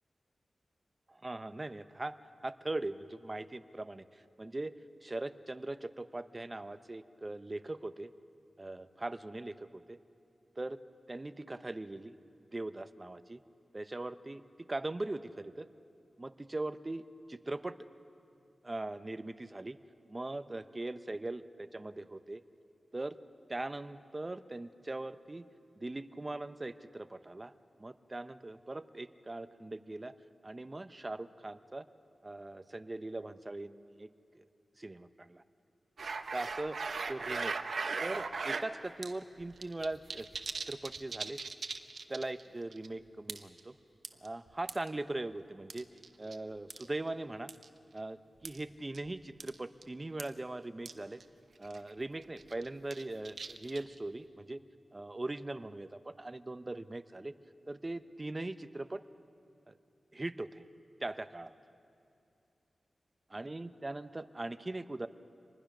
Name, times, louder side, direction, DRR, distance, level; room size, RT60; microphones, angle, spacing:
voice 1, 1.1-2.2 2.4-8.1 8.6-10.0 10.6-10.8 11.1-12.2 12.5-13.4 13.7-14.4 14.7-15.7 16.2-17.8 18.6-19.8 20.1-22.4 22.9-23.2 23.5-25.4 25.8-27.5 27.8-30.1 30.4-31.8 32.2-34.1 34.3-34.4 34.8-35.4 36.3-36.8 37.1-37.5 38.0-40.3 40.7-41.4 42.1-43.7 44.2-45.9 46.2-47.5 47.9-51.2 51.6-54.6 54.9-57.3 57.7-59.0 59.7-59.8 60.1-60.6 61.0-61.5 63.3-65.1, right 2 dB, 30° right, 12 dB, 0.8 m, -40 dB
sound 1, 36.0-38.7 39.0-39.1 39.4-42.4 42.7-42.9 43.3-43.6 44.0-44.9 45.7-46.4 46.7-46.9 47.5-47.7 48.4-48.6 48.9-49.1 49.4-49.6 49.8-49.9 50.2-50.3 50.9-51.0 51.2-51.3 51.6-51.9 52.4-54.0, right 4 dB, 70° right, 1.0 m, -38 dB
26.0 x 20.5 x 6.1 m, 2.6 s
wide cardioid pair, 75°, 0 cm